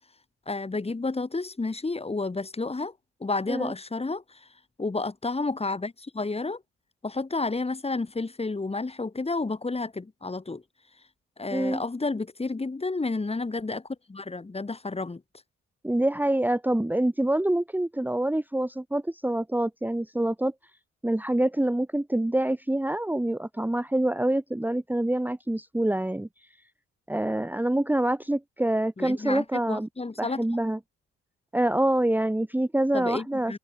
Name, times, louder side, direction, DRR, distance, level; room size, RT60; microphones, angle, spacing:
voice 1, 0.5-2.9 3.2-4.5 4.8-6.6 7.0-10.6 11.4-15.2 29.0-30.4 32.9-33.6, left 3 dB, 20° left, 2.4 m, -31 dB
voice 2, 11.5-11.8 15.8-20.5 21.0-26.3 27.1-29.9 30.2-30.8 31.5-33.6, right 1 dB, 5° right, 1.5 m, -26 dB
cardioid pair, 90°, 30 cm